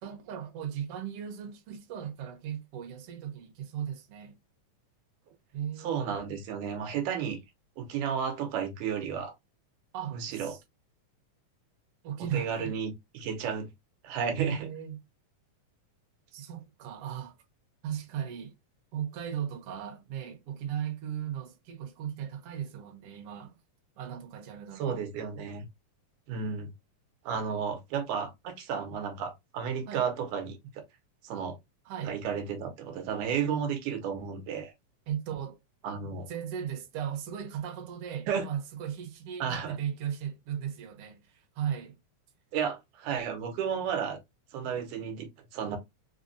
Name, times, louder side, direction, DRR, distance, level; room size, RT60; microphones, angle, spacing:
voice 1, 0.0-4.4 5.5-6.2 9.9-10.6 12.0-12.8 14.3-15.0 16.3-17.4 17.8-18.5 18.9-23.6 24.0-25.1 29.9-30.1 31.8-32.2 35.1-35.6 36.3-42.0, right 9 dB, 65° right, 1.6 m, -37 dB
voice 2, 5.8-7.4 7.8-9.3 10.1-10.5 12.3-13.7 14.0-14.7 24.8-25.7 26.3-26.7 27.3-30.8 31.2-31.6 32.1-34.7 35.8-36.3 38.3-38.5 39.4-39.8 42.5-44.2 44.5-45.8, right 7 dB, 80° right, 2.3 m, -33 dB
5.1 x 2.2 x 2.5 m
omnidirectional pair, 3.6 m